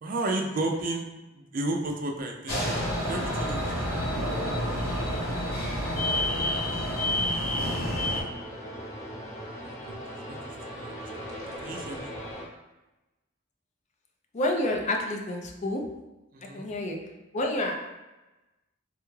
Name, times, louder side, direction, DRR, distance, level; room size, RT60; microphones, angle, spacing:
voice 1, 0.0-1.1 1.3-3.9 9.6-9.8 10.3-10.4 10.7-10.9 11.3-11.4 11.6-12.1 16.3-16.6, right 2 dB, 45° right, 2 dB, 0.4 m, -32 dB
sound 1, 2.5-8.2, left 1 dB, 75° left, 1.0 m, -28 dB
sound 2, 7.6-12.5, equal, 15° left, 0.8 m, -39 dB
voice 2, 14.3-15.8 16.5-17.0 17.3-17.7, left 1 dB, 35° left, 2 dB, 0.4 m, -28 dB
3.4 x 2.3 x 3.1 m, 1.1 s
head